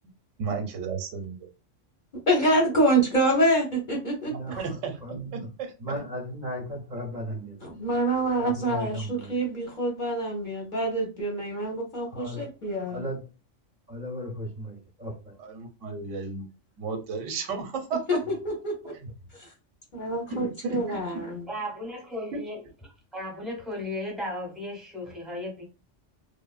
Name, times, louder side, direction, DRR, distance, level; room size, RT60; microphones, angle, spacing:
voice 1, 0.4-1.5 4.6-5.7 15.4-16.5 16.8-18.2 20.4-21.2 22.3-22.4, right 4 dB, 85° right, 1.0 m, -33 dB
voice 2, 2.3-4.6 7.6-13.0 18.1-18.2 18.4-18.9 19.3-19.5 19.9-21.5, right 1 dB, 50° left, 0.7 m, -26 dB
voice 3, 4.3-5.5 5.8-7.7 8.4-9.4 12.1-12.5 12.9-13.2 13.9-15.3 19.0-19.1 20.3-20.5, equal, 45° right, 0.6 m, -36 dB
voice 4, 21.5-25.6, left 1 dB, ahead, 0.8 m, -35 dB
3.2 x 2.0 x 2.3 m
omnidirectional pair, 1.3 m